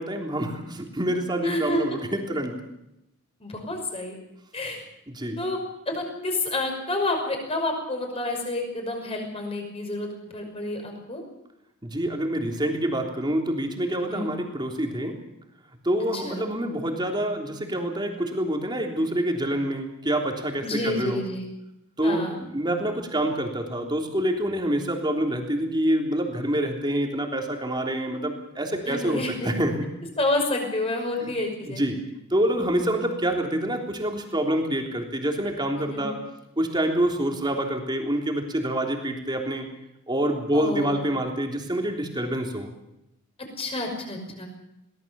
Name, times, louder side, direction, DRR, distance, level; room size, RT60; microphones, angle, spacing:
voice 1, 0.0-2.5 5.1-5.4 11.8-15.2 15.8-21.2 22.0-29.8 31.2-31.3 31.7-32.0 32.3-36.2 36.6-39.7 40.1-42.7, right 1 dB, 20° right, 2 dB, 3.4 m, -26 dB
voice 2, 1.4-1.8 3.4-4.2 4.5-4.8 5.4-5.6 5.9-11.2 14.1-14.3 16.1-16.4 20.6-21.4 22.0-22.4 28.9-29.5 30.2-31.8 35.9-36.1 40.5-41.0 43.6-44.5, left 2 dB, 25° left, 3 dB, 5.8 m, -29 dB
22.5 x 18.5 x 7.1 m, 0.87 s
head